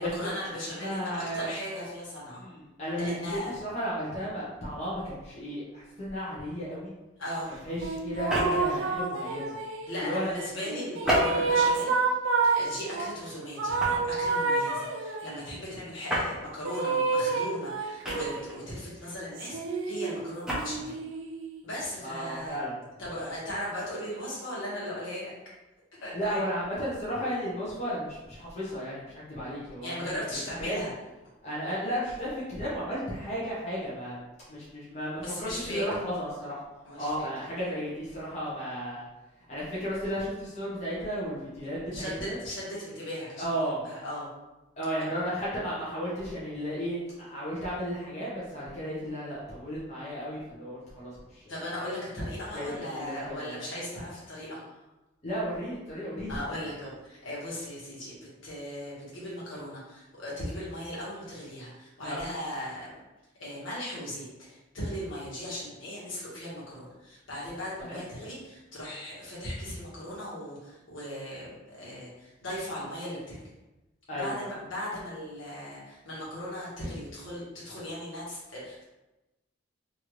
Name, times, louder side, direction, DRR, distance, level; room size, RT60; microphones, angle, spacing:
voice 1, 0.0-2.4 3.0-3.5 7.2-7.5 9.9-11.9 12.5-21.0 21.6-22.6 23.0-25.3 26.0-26.4 29.8-30.9 35.2-35.8 36.8-37.3 41.9-43.5 43.8-44.3 45.0-45.1 51.5-54.6 56.3-58.2 58.4-63.0 63.4-73.4 74.1-78.8, left 1 dB, 70° left, -7 dB, 1.2 m, -37 dB
voice 2, 0.8-1.5 2.4-6.9 7.6-9.6 10.0-10.3 11.1-11.4 15.7-15.9 22.0-22.8 26.1-30.1 30.6-30.8 31.4-34.2 34.5-36.6 36.9-39.0 39.5-42.4 43.4-43.8 44.8-51.7 52.5-53.6 55.2-56.4 62.0-62.2 67.9-68.0 74.1-74.5, equal, 35° left, -8 dB, 0.7 m, -34 dB
sound 1, 7.8-10.0 10.6-13.1 13.6-15.4 16.6-18.5 19.4-21.6, right 4 dB, 70° right, 0.4 m, -29 dB
sound 2, 8.1-8.8 11.0-11.8 12.4-12.6 13.8-14.2 16.1-16.3 18.0-18.6 20.3-20.7, equal, 5° right, 0.5 m, -29 dB
3.1 x 2.5 x 3.0 m, 1.0 s
head